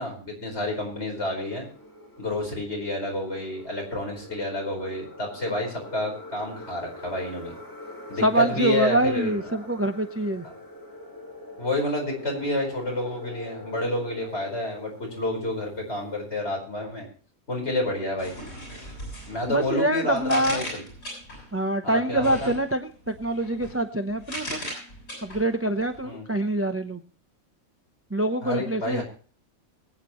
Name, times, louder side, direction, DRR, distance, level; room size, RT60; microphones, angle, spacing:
voice 1, 0.0-1.7 2.2-7.5 8.1-9.4 10.4-10.5 11.6-17.1 17.5-18.3 19.3-20.8 21.8-22.5 26.0-26.3 28.4-29.0, left 1 dB, 50° left, 0 dB, 5.0 m, -29 dB
sound 1, 1.2-16.4, left 2 dB, 15° left, 1.8 m, -43 dB
voice 2, 8.2-10.5 19.5-20.7 21.5-24.6 25.2-27.0 28.1-29.0, right 1 dB, 15° right, 7 dB, 0.5 m, -25 dB
sound 2, 18.2-21.6 22.1-26.1, equal, 80° left, 7.5 m, -39 dB
23.0 x 8.9 x 3.1 m, 0.41 s
omnidirectional pair, 1.4 m